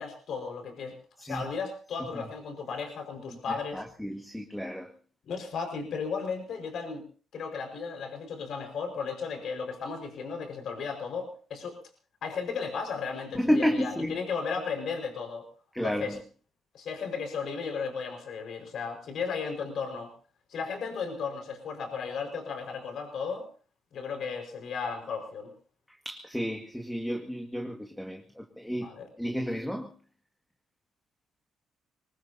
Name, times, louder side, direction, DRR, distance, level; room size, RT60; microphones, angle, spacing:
voice 1, 0.0-3.8 5.2-7.0 7.3-11.8 12.2-15.5 15.8-16.2 16.7-20.1 20.5-23.4 23.9-25.5 28.7-29.1, left 5 dB, 65° left, 4 dB, 5.1 m, -35 dB
voice 2, 3.5-4.9 13.3-14.2 15.7-16.2 25.9-28.9 29.2-29.9, equal, 5° left, 3 dB, 2.0 m, -31 dB
24.0 x 20.0 x 2.8 m, 0.39 s
cardioid pair, 90°, 0 cm